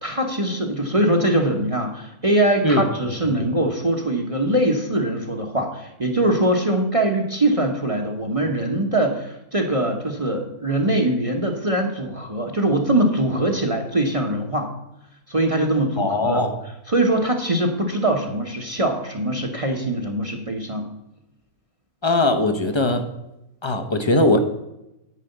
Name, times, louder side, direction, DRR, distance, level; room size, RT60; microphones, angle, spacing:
voice 1, 0.0-14.7 15.3-16.4 16.9-20.9, right 1 dB, 25° right, 2 dB, 0.9 m, -22 dB
voice 2, 16.0-16.6 22.0-23.1 23.6-24.4, left 2 dB, 25° left, 6 dB, 0.7 m, -20 dB
9.6 x 4.9 x 7.9 m, 0.89 s
omnidirectional pair, 1.5 m